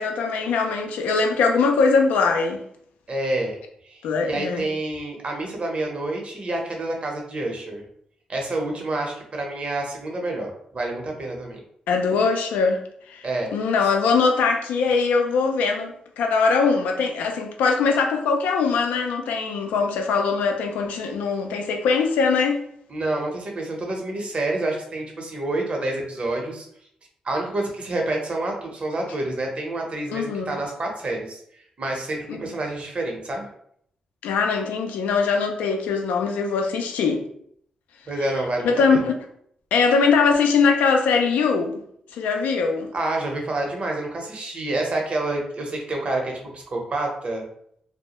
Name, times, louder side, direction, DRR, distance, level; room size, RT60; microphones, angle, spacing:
voice 1, 0.0-2.6 4.0-4.7 11.9-12.8 13.1-13.2 13.5-22.6 30.1-30.5 32.3-32.4 34.2-37.2 38.6-39.2 39.7-41.8 42.1-42.9, left 5 dB, 90° left, 3 dB, 0.4 m, -21 dB
voice 2, 3.1-3.6 3.8-7.8 8.3-11.6 13.2-13.5 22.9-26.7 27.2-31.4 31.8-33.5 38.1-39.0 42.9-47.4, right 2 dB, 50° right, 0 dB, 0.7 m, -28 dB
2.2 x 2.0 x 2.9 m, 0.67 s
supercardioid pair, 55°, 3 cm